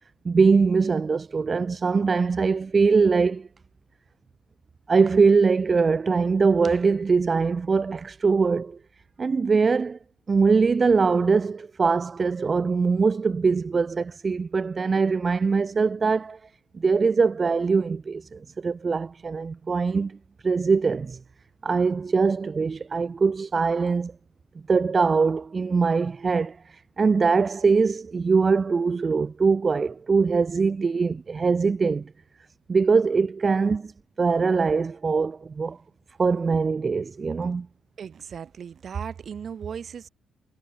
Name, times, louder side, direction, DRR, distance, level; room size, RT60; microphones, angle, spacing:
voice 1, 0.2-3.5 4.9-8.8 9.2-10.0 10.3-16.4 16.7-20.2 20.4-21.2 21.6-24.1 24.7-32.1 32.7-33.9 34.2-35.8 36.2-37.7, right 4 dB, 35° right, 0.4 m, -22 dB
voice 2, 38.0-40.1, right 7 dB, 50° right, 1.9 m, -36 dB
cardioid pair, 90°, 0 cm